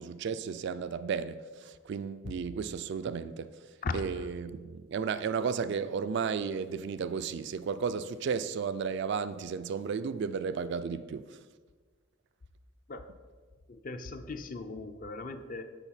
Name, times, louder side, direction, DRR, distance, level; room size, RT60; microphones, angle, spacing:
voice 1, 0.0-3.5 3.9-11.4, right 6 dB, 55° right, 0.3 m, -33 dB
voice 2, 3.8-4.3 12.9-13.1 13.7-15.6, left 3 dB, 40° left, 0.5 m, -38 dB
7.1 x 4.0 x 5.7 m
head